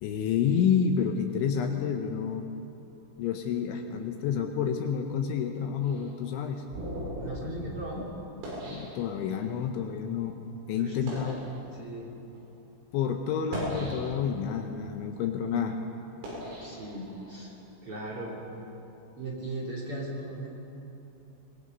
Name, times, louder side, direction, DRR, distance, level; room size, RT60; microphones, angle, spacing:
voice 1, 0.0-2.5 3.2-6.6 8.7-10.4 10.7-11.4 12.9-15.8, left 7 dB, 75° left, 4 dB, 3.1 m, -29 dB
sound 1, 5.8-9.6 10.2-10.4 10.9-11.5 12.2-12.4 13.3-14.4 14.9-17.5, equal, 80° right, 9.3 m, -39 dB
voice 2, 7.2-8.1 10.7-11.3 11.8-12.1 16.6-17.5 17.8-18.4 19.2-20.6, right 1 dB, 35° right, -2 dB, 2.9 m, -38 dB
24.0 x 24.0 x 5.4 m, 2.9 s
omnidirectional pair, 6.0 m